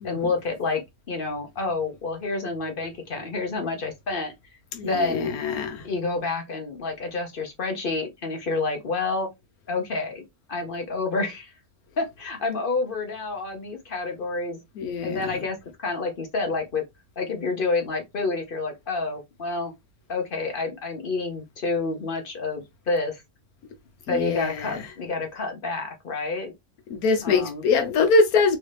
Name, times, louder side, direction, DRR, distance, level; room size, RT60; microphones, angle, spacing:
voice 1, 0.0-4.3 4.8-5.3 5.8-9.3 9.7-10.2 10.5-11.5 12.0-14.6 15.0-16.8 17.2-19.7 20.1-23.2 24.1-26.5 27.2-27.6, left 3 dB, 50° left, 0.7 m, -29 dB
voice 2, 4.7-5.8 14.8-15.3 24.1-24.8 26.9-28.6, left 4 dB, 85° left, 1.2 m, -23 dB
3.2 x 2.6 x 3.1 m
omnidirectional pair, 1.5 m